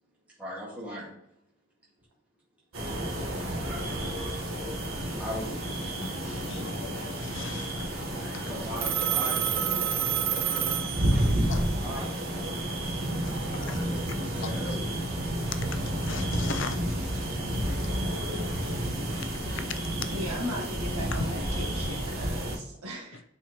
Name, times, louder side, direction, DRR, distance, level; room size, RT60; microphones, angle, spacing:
voice 1, 0.4-1.1 5.2-6.0 6.2-6.5 8.5-9.8 11.0-11.4 11.8-13.0 13.5-14.9, equal, 5° right, -7 dB, 1.7 m, -40 dB
sound 1, 2.7-22.6, right 1 dB, 70° right, 1.2 m, -31 dB
voice 2, 6.0-8.5 10.4-12.0 13.3-13.8 14.4-14.5 15.7-17.3 17.8-18.0 18.6-18.8 19.5-19.8 20.6-20.7 21.1-21.8 23.1-23.2, left 4 dB, 55° left, 9 dB, 0.5 m, -40 dB
Telephone, 8.8-11.5, right 10 dB, 45° right, 0.5 m, -29 dB
voice 3, 20.1-23.2, equal, 90° right, -1 dB, 1.5 m, -37 dB
8.7 x 4.2 x 3.0 m, 0.80 s
head